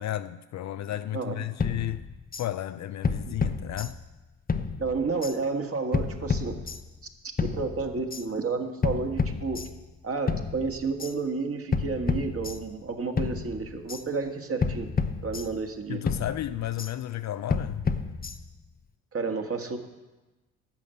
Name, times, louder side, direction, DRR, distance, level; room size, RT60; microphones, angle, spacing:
voice 1, 0.0-2.0 2.4-4.0 15.9-17.9, left 13 dB, 45° left, 0.5 m, -33 dB
voice 2, 1.1-1.5 3.3-3.4 4.8-6.6 7.4-9.6 10.0-14.9 15.2-16.0 19.1-19.8, right 4 dB, 35° right, 1.7 m, -31 dB
sound 1, 1.6-2.5 3.0-4.2 4.5-5.4 5.9-7.0 7.4-8.2 8.8-10.0 10.3-11.1 11.7-12.9 13.2-14.0 14.6-15.8 16.1-16.9 17.5-18.7, left 5 dB, 20° left, 0.8 m, -30 dB
12.0 x 6.5 x 7.8 m
hypercardioid pair, 50°, 40 cm